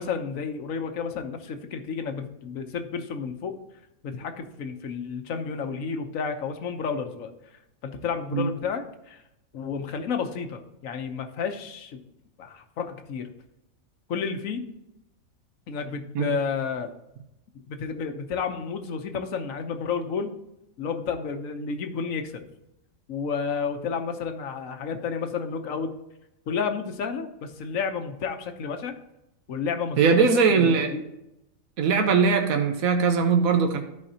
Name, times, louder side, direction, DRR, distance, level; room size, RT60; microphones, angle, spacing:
voice 1, 0.0-3.6 4.0-7.3 7.8-9.2 9.5-12.0 12.4-13.3 14.1-14.7 15.7-16.9 17.7-20.3 20.8-22.4 23.1-26.0 26.5-28.9 29.5-30.2 30.5-31.0, left 6 dB, 75° left, 6 dB, 1.3 m, -31 dB
voice 2, 30.0-30.9 31.8-33.8, right 5 dB, 85° right, 5 dB, 1.3 m, -20 dB
14.0 x 4.8 x 2.8 m, 0.88 s
omnidirectional pair, 1.4 m